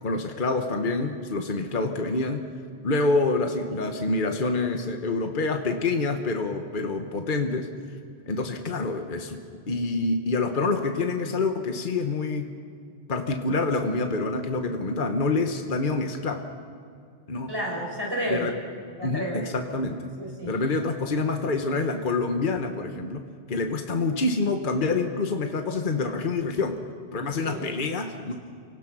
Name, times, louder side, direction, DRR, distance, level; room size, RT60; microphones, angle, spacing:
voice 1, 0.0-2.4 2.8-7.7 8.3-9.4 9.7-12.5 13.1-16.4 17.3-17.5 18.3-18.5 19.0-20.1 20.4-26.8 27.1-28.3, left 3 dB, 50° left, 5 dB, 1.4 m, -27 dB
voice 2, 17.5-18.5 19.0-19.5 20.2-20.5 27.4-27.8, equal, 20° right, -2 dB, 6.2 m, -31 dB
29.0 x 17.5 x 6.2 m, 2.3 s
omnidirectional pair, 1.1 m